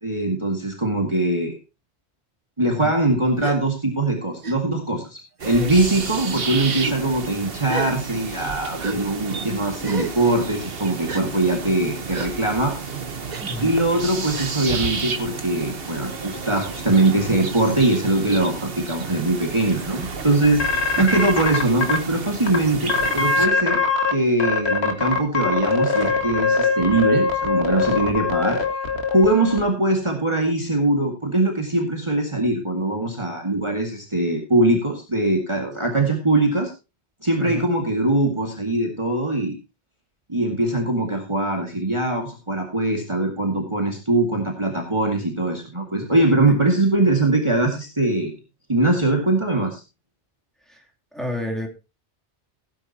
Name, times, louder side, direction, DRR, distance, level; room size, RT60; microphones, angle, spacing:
voice 1, 0.0-1.5 2.6-12.9 13.6-23.8 24.1-28.6 29.1-36.7 37.2-39.6 40.3-48.3 48.7-49.8, right 2 dB, 25° right, 2 dB, 2.1 m, -22 dB
voice 2, 2.6-3.0 13.4-13.8 37.4-37.7 46.3-46.6 50.7-50.8 51.1-51.7, left 1 dB, ahead, 1 dB, 3.0 m, -30 dB
Gasp, 3.4-3.6 4.4-4.6 5.4-5.8 6.6-7.0 7.7-7.9 8.8-9.0 9.8-10.2 11.1-11.2 12.1-12.3 13.3-13.4 14.3-14.5, right 4 dB, 40° right, 1.2 m, -32 dB
sound 1, 5.4-23.5, right 5 dB, 60° right, 1.4 m, -32 dB
sound 2, 20.6-22.0 22.5-22.6 22.9-24.1 24.4-29.6, left 4 dB, 70° left, 2.2 m, -22 dB
17.5 x 9.7 x 2.9 m, 0.28 s
omnidirectional pair, 1.1 m